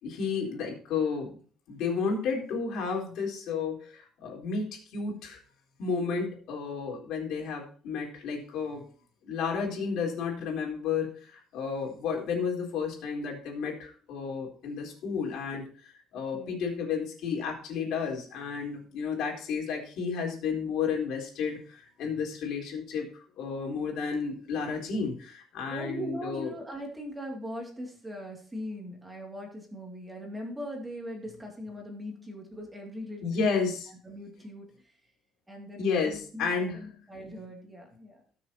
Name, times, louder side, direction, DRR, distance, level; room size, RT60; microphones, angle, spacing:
voice 1, 0.0-1.4 1.7-5.4 5.8-8.8 9.2-15.6 16.1-26.5 33.2-33.9 35.8-36.8, left 5 dB, 65° left, 0 dB, 3.9 m, -32 dB
voice 2, 16.1-16.6 25.7-33.6 34.0-34.7 35.5-38.2, equal, 10° right, 1 dB, 2.5 m, -40 dB
18.5 x 6.7 x 2.9 m, 0.42 s
cardioid pair, 180°, 0 cm